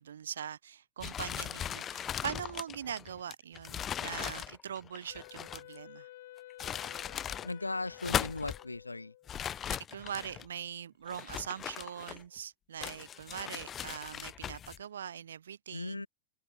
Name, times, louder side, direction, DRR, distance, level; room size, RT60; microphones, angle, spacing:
voice 1, 0.0-6.1 9.9-16.0, right 8 dB, 65° right, 1.6 m, -42 dB
sound 1, 1.0-5.8 6.4-7.5 7.9-8.6 9.3-10.5 11.1-12.4 12.8-14.8, left 9 dB, 25° left, 2.1 m, -38 dB
Wind instrument woodwind instrument, 5.1-9.4, left 15 dB, 55° left, 7.6 m, -52 dB
voice 2, 7.4-9.1 15.7-16.1, left 2 dB, 80° left, 3.9 m, -37 dB
open air
figure-of-eight pair, 90°, 0 cm